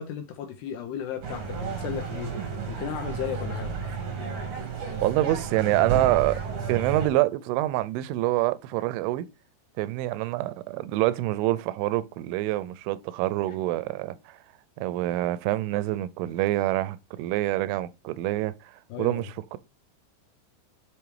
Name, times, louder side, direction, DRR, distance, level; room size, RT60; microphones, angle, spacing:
voice 1, 0.0-2.3 2.7-3.7 18.9-19.2, left 9 dB, 75° left, 2.5 m, -34 dB
sound 1, 1.2-7.1, right 5 dB, 60° right, 1.7 m, -32 dB
voice 2, 5.0-6.4 6.7-9.3 9.8-14.4 14.8-19.6, right 16 dB, 85° right, 2.9 m, -26 dB
7.0 x 5.4 x 4.7 m
omnidirectional pair, 5.6 m